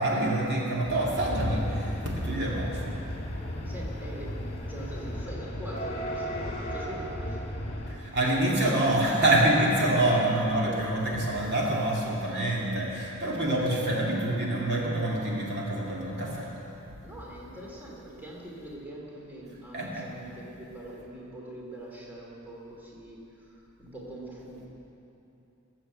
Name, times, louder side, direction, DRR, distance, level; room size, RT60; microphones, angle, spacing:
voice 1, 0.0-2.8 7.9-16.5 19.7-20.0, right 1 dB, 50° right, -4 dB, 2.5 m, -26 dB
sound 1, 0.8-8.0, equal, 30° left, 2.1 m, -34 dB
voice 2, 2.6-2.9 3.4-4.4 4.7-7.5 9.8-10.0 10.4-10.9 11.1-11.6 17.0-24.7, right 1 dB, 10° right, -4 dB, 2.4 m, -43 dB
20.0 x 7.6 x 7.9 m, 2.9 s
head